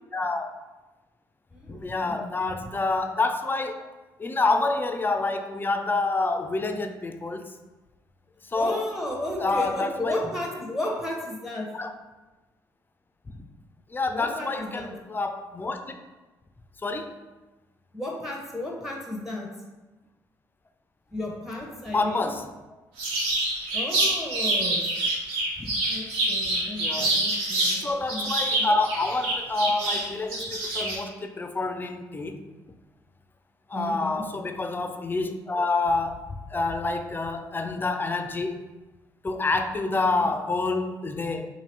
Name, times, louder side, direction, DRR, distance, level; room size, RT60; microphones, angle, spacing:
voice 1, 0.1-0.5 1.7-3.9 4.2-7.4 8.5-8.8 9.4-10.2 11.8-11.9 13.3-13.4 13.9-16.0 16.8-17.1 21.9-22.4 25.6-25.7 26.8-27.2 27.7-32.4 33.7-36.2 36.5-38.6 39.2-41.5, left 3 dB, 20° left, 7 dB, 0.4 m, -27 dB
voice 2, 1.5-2.4 8.5-11.7 14.1-14.9 17.9-19.5 21.1-22.3 23.7-24.9 25.9-27.8 28.1-28.3 28.6-28.7 33.7-34.2 39.9-40.1, left 1 dB, 5° right, -1 dB, 0.7 m, -34 dB
sound 1, 23.0-27.8 28.1-31.0, right 2 dB, 75° right, 0.6 m, -26 dB
2.8 x 2.5 x 3.2 m, 1.1 s
hypercardioid pair, 45°, 9 cm